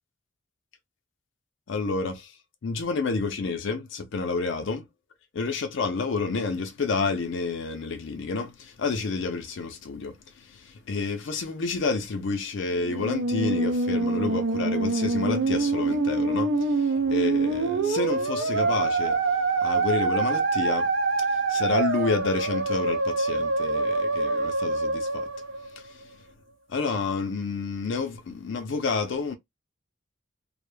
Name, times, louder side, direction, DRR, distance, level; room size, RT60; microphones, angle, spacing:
voice 1, 1.7-2.3 2.6-4.9 5.3-19.2 19.6-20.9 21.3-25.3 25.8-25.9 26.7-29.3, left 4 dB, 60° left, 0.4 m, -29 dB
Musical instrument, 12.8-26.1, right 3 dB, 65° right, 0.5 m, -25 dB
2.1 x 2.0 x 3.1 m
head